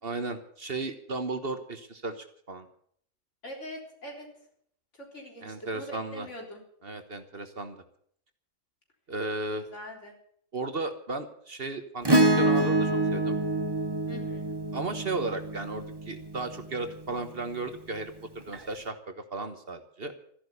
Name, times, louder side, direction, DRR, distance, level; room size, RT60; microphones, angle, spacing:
voice 1, 0.0-2.7 5.4-6.3 6.8-7.8 9.1-9.7 10.5-13.4 14.7-20.1, right 3 dB, 50° right, 8 dB, 1.5 m, -35 dB
voice 2, 3.4-4.3 4.9-6.6 9.7-10.1 14.1-14.6, equal, 65° left, 0 dB, 4.2 m, -43 dB
Acoustic guitar / Strum, 12.1-16.7 18.5-18.6, right 2 dB, 20° right, 1.1 m, -26 dB
14.0 x 11.0 x 8.3 m, 0.63 s
omnidirectional pair, 1.3 m